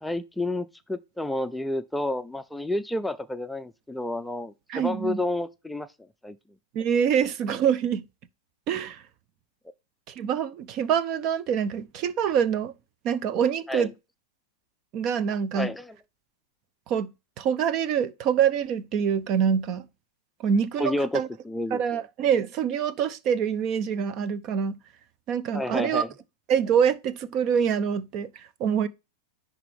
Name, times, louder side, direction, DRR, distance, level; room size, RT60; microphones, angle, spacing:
voice 1, 0.0-5.9 6.2-6.4 13.7-13.9 15.5-16.0 20.8-22.0 25.5-26.1, left 1 dB, 5° left, 0.5 m, -30 dB
voice 2, 4.7-5.2 6.7-8.1 8.7-9.0 10.1-12.7 13.0-13.9 14.9-15.7 16.9-19.9 20.4-21.3 21.7-24.8 25.3-26.0 26.5-28.9, right 8 dB, 45° right, 0.7 m, -25 dB
10.0 x 3.6 x 3.4 m
hypercardioid pair, 105°, 0 cm